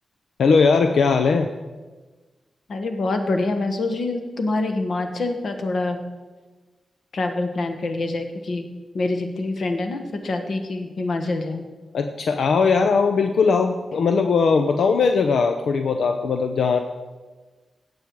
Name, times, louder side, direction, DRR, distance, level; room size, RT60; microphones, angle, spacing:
voice 1, 0.4-1.5 11.9-16.8, left 5 dB, 85° left, 6 dB, 0.6 m, -19 dB
voice 2, 2.7-6.0 7.1-8.7 8.9-11.6, left 2 dB, 60° left, 6 dB, 1.4 m, -25 dB
16.5 x 7.7 x 4.7 m, 1.3 s
wide cardioid pair, 165°, 0 cm